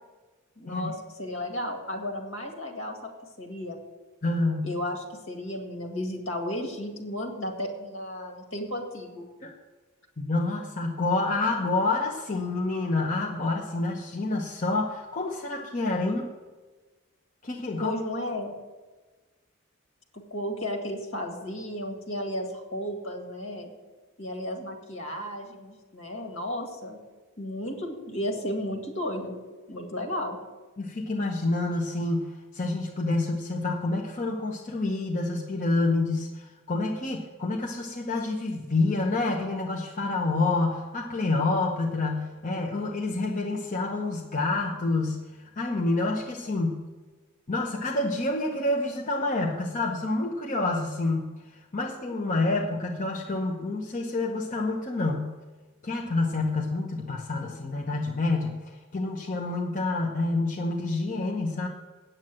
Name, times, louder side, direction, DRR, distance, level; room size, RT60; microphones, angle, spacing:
voice 1, 0.6-3.1 3.4-3.8 4.6-9.3 17.8-18.5 20.1-23.7 24.2-27.0 27.4-29.3 29.7-30.4, left 1 dB, 65° left, 3 dB, 2.1 m, -34 dB
voice 2, 4.2-4.7 9.4-9.5 10.2-16.3 17.4-17.9 30.8-46.8 47.5-51.3 51.7-55.3 55.8-61.7, left 2 dB, 40° left, 0 dB, 0.9 m, -28 dB
9.1 x 7.7 x 7.7 m, 1.3 s
head